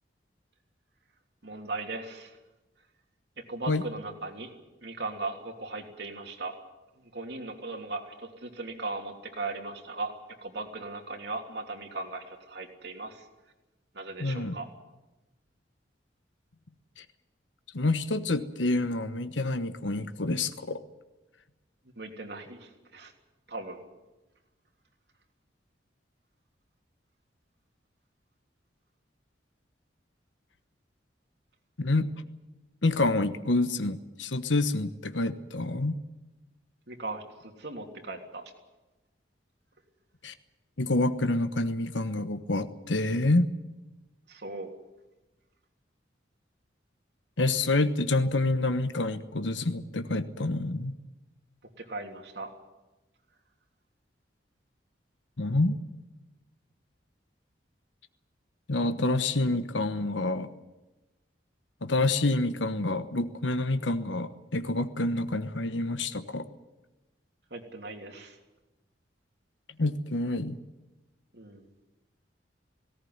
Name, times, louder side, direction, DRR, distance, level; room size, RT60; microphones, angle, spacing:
voice 1, 1.4-2.4 3.4-4.5 4.8-6.6 6.9-10.1 10.4-13.3 13.9-14.7 21.9-23.1 23.5-23.8 36.9-38.4 44.3-44.7 51.8-52.5 67.5-68.4 71.3-71.7, right 3 dB, 65° right, 3 dB, 3.1 m, -38 dB
voice 2, 14.2-14.5 17.0-17.1 17.7-20.8 31.8-32.1 32.8-36.0 40.2-40.3 40.8-43.5 47.4-51.0 55.4-55.8 58.7-60.5 61.8-66.5 69.8-70.6, left 2 dB, 85° left, 10 dB, 1.2 m, -27 dB
18.5 x 18.0 x 9.6 m, 1.1 s
head